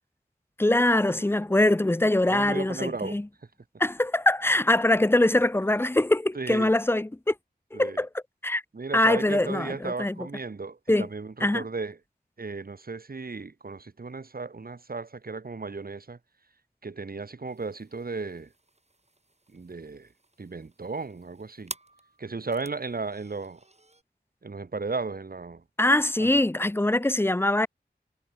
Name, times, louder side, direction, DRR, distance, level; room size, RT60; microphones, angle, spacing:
voice 1, 0.6-3.3 3.8-7.3 7.7-8.1 8.4-8.6 8.9-10.3 10.9-11.1 11.4-11.6 25.8-27.7, left 1 dB, 15° left, 0.5 m, -23 dB
voice 2, 2.3-3.2 6.3-6.7 7.7-8.0 8.7-11.9 12.4-16.2 16.8-18.5 19.5-20.1 20.4-21.7 22.2-23.6 24.4-25.6 26.2-26.3, right 4 dB, 60° right, 1.0 m, -35 dB
sound 1, 17.5-24.0, right 2 dB, 40° right, 2.2 m, -49 dB
wide cardioid pair, 45°, 18 cm